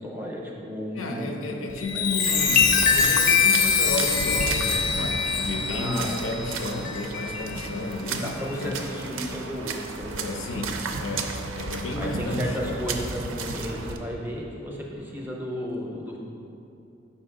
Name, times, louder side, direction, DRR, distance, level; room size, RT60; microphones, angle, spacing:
voice 1, 0.0-1.6 1.9-2.5 5.7-6.4 7.8-7.9 8.2-10.3 12.0-16.2, equal, 10° right, -2 dB, 0.5 m, -34 dB
voice 2, 1.0-8.8 10.1-12.9, left 2 dB, 85° left, 2 dB, 0.6 m, -32 dB
Chime, 1.7-7.7 8.2-8.5, left 6 dB, 40° left, 0.5 m, -23 dB
sound 1, 2.2-14.0, right 3 dB, 85° right, 0.4 m, -34 dB
5.4 x 5.0 x 3.5 m, 2.7 s
head